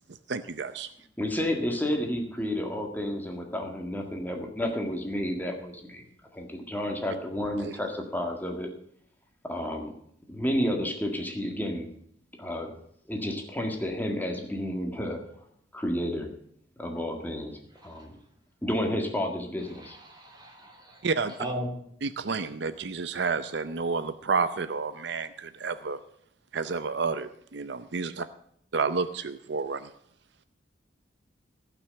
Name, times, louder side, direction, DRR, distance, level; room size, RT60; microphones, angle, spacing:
voice 1, 0.3-0.9 7.6-7.7 21.0-21.4 22.0-26.0 26.5-28.2 28.7-29.9, right 4 dB, 65° right, 12 dB, 0.6 m, -30 dB
voice 2, 1.2-6.1 6.3-8.7 9.4-9.9 10.3-11.9 12.4-12.7 13.1-15.2 15.7-16.3 16.8-18.2 18.6-20.0, left 1 dB, 10° left, 2 dB, 1.7 m, -31 dB
voice 3, 20.1-21.0 21.4-21.7, right 1 dB, 25° right, 2 dB, 2.9 m, -36 dB
16.0 x 6.0 x 7.7 m, 0.68 s
head